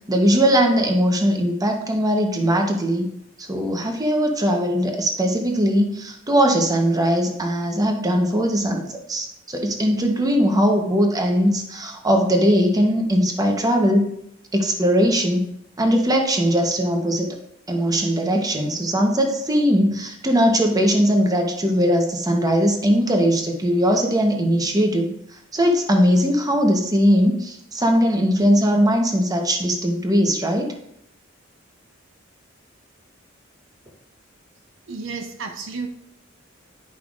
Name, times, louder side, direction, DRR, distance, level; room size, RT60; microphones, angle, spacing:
voice 1, 0.1-3.1 3.4-14.1 14.5-15.5 15.8-17.4 17.7-25.1 25.5-30.7, equal, 20° right, 0.9 m, -20 dB
voice 2, 34.9-35.9, right 4 dB, 70° right, 0.7 m, -31 dB
10.5 x 5.5 x 2.5 m
head